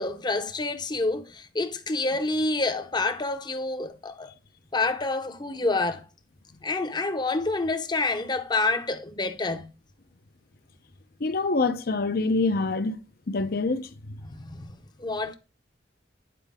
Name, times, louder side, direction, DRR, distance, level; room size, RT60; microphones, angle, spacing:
voice 1, 0.0-4.3 4.7-6.0 6.6-9.7 14.2-15.3, left 3 dB, 25° left, 0.7 m, -28 dB
voice 2, 11.2-13.0 13.3-14.2, left 3 dB, 60° left, 0.7 m, -26 dB
9.2 x 4.5 x 3.6 m
head